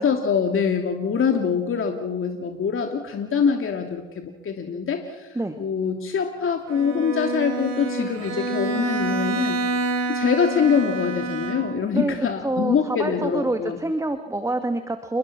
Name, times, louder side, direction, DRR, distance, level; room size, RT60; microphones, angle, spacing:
voice 1, 0.0-9.6 10.1-13.8, left 6 dB, 45° left, 4 dB, 2.9 m, -24 dB
Bowed string instrument, 6.7-12.0, right 2 dB, 60° right, 4.7 m, -27 dB
voice 2, 12.4-15.2, right 2 dB, 10° right, 7 dB, 2.1 m, -26 dB
29.5 x 21.0 x 6.2 m, 1.1 s
hypercardioid pair, 55°, 30 cm